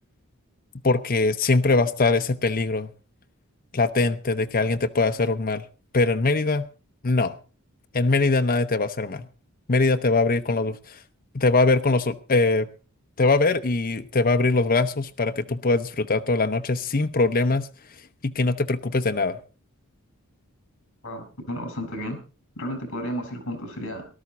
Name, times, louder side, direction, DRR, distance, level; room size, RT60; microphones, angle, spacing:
voice 1, 0.8-2.9 3.7-5.6 5.9-6.7 7.0-7.4 7.9-9.3 9.7-11.0 11.3-12.7 13.2-17.7 18.2-19.4, left 3 dB, 40° left, 8 dB, 0.8 m, -22 dB
voice 2, 21.0-22.2 22.6-24.0, equal, 60° left, 8 dB, 4.9 m, -32 dB
19.0 x 12.0 x 4.0 m, 0.34 s
head